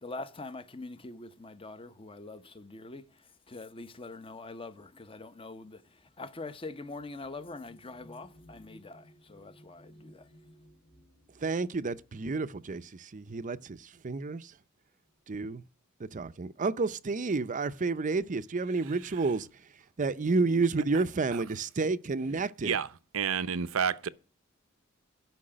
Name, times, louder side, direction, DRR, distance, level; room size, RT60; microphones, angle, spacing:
voice 1, 0.0-3.1 3.5-10.3, left 3 dB, 25° left, 0.8 m, -44 dB
sound 1, 5.0-13.4 14.4-14.5 14.9-15.4, equal, 60° left, 3.5 m, -59 dB
voice 2, 11.4-14.5 15.3-15.6 16.0-19.5 20.0-22.8, right 3 dB, 40° right, 0.5 m, -30 dB
voice 3, 23.1-24.1, right 7 dB, 75° right, 0.7 m, -29 dB
12.5 x 5.9 x 8.7 m
head